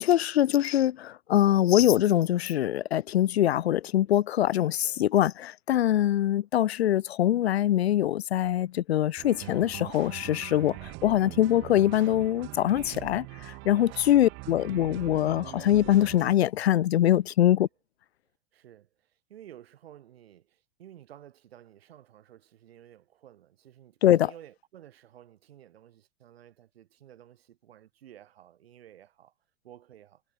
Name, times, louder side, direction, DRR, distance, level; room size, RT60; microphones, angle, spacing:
voice 1, 0.0-17.7 24.0-24.3, left 12 dB, 90° left, 0.5 m, -23 dB
sound 1, 9.2-16.3, right 29 dB, 40° right, 0.7 m, -42 dB
voice 2, 18.5-29.3 29.6-30.2, right 11 dB, 75° right, 2.0 m, -53 dB
hypercardioid pair, 105°, 31 cm